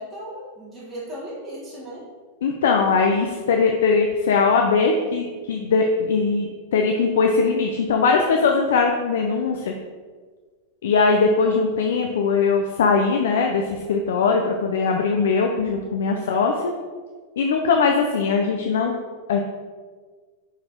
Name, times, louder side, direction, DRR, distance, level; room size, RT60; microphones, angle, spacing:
voice 1, 0.0-2.0 16.1-16.4, equal, ahead, -10 dB, 1.4 m, -37 dB
voice 2, 2.4-9.7 10.8-16.7 17.4-18.9 19.3-19.4, left 4 dB, 85° left, 2 dB, 0.6 m, -20 dB
6.4 x 4.1 x 4.5 m, 1.5 s
supercardioid pair, 170°, 0 cm